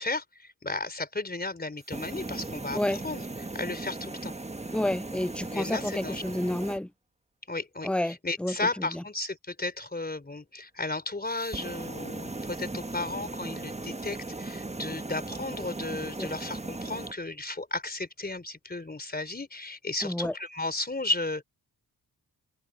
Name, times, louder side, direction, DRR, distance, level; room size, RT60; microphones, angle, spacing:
voice 1, 0.0-4.3 5.5-6.2 7.5-21.4, left 2 dB, 25° left, 3.7 m, -34 dB
sound 1, 1.8-6.8 11.3-17.1, right 2 dB, 15° right, 1.3 m, -38 dB
voice 2, 4.7-6.9 7.8-8.1 8.4-8.5 16.2-16.3 20.0-20.3, left 1 dB, 5° left, 0.4 m, -29 dB
open air
cardioid pair, 70°, 40 cm